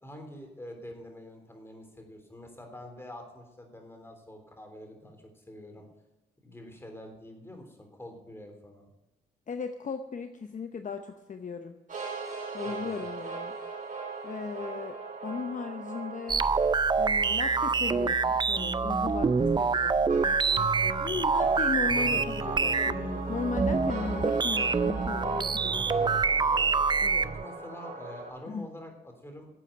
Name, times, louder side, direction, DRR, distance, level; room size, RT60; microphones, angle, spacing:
voice 1, 0.0-5.9 6.4-8.9 12.6-13.0 19.4-19.8 21.1-21.5 25.7-26.7 27.2-29.5, left 1 dB, 15° left, 3 dB, 3.4 m, -46 dB
voice 2, 9.5-11.8 12.5-13.5 14.2-16.5 17.0-20.1 21.0-26.0 27.0-27.2 28.5-28.7, left 5 dB, 45° left, 7 dB, 0.8 m, -37 dB
sound 1, 11.9-28.3, right 3 dB, 45° right, 5.7 m, -39 dB
sound 2, 16.3-27.4, right 4 dB, 25° right, 0.5 m, -26 dB
11.5 x 8.4 x 9.2 m, 0.97 s
cardioid pair, 85°, 18 cm